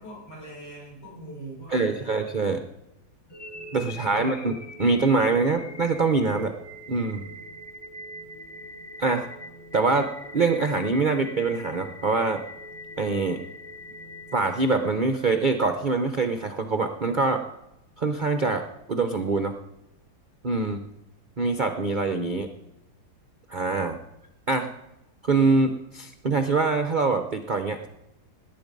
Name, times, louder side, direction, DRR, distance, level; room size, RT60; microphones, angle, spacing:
voice 1, 0.0-2.2 3.9-4.5, right 2 dB, 60° left, -5 dB, 7.7 m, -42 dB
voice 2, 1.7-2.6 3.7-6.5 6.9-7.2 9.0-9.3 9.7-12.4 13.0-13.4 14.3-17.4 18.0-18.6 18.9-19.5 20.4-20.8 21.4-22.5 23.5-24.0 24.5-24.7 25.2-27.9, right 3 dB, 60° right, 7 dB, 0.5 m, -24 dB
sound 1, 3.3-15.3, left 1 dB, 15° left, 1.1 m, -43 dB
19.5 x 8.8 x 5.3 m, 0.88 s
omnidirectional pair, 2.1 m